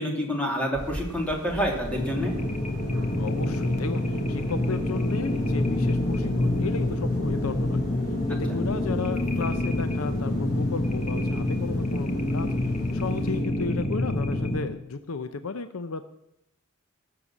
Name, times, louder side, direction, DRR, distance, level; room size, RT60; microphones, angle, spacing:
voice 1, 0.0-2.3 8.5-8.6, equal, 5° left, -1 dB, 2.7 m, -28 dB
sound 1, 0.7-13.4, equal, 20° right, 4.7 m, -43 dB
sound 2, 1.9-14.6, left 1 dB, 30° left, 1.4 m, -27 dB
voice 2, 3.2-7.8 8.3-12.5 12.9-16.0, left 4 dB, 90° left, 10 dB, 0.7 m, -34 dB
17.5 x 6.9 x 7.2 m, 0.83 s
head